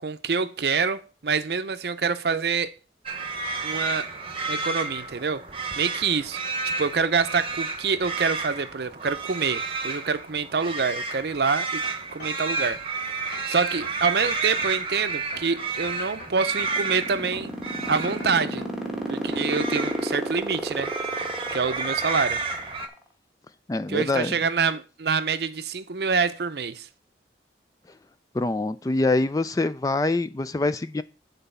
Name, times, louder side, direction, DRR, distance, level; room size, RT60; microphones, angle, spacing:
voice 1, 0.0-2.7 3.6-4.1 4.5-5.4 5.8-11.8 12.1-12.8 13.5-17.5 17.9-18.6 19.1-20.9 21.5-22.4 23.9-26.9, right 5 dB, 60° right, 0.6 m, -26 dB
sound 1, 3.1-22.9, right 4 dB, 30° right, 1.0 m, -31 dB
sound 2, 11.8-12.9 13.3-14.9 15.3-16.9 17.3-18.9 19.3-19.6, left 1 dB, 60° left, 3.2 m, -45 dB
sound 3, 16.5-22.9, equal, 5° right, 1.2 m, -30 dB
voice 2, 23.7-24.4 28.3-31.0, left 2 dB, 20° left, 0.3 m, -25 dB
9.1 x 4.0 x 5.4 m
head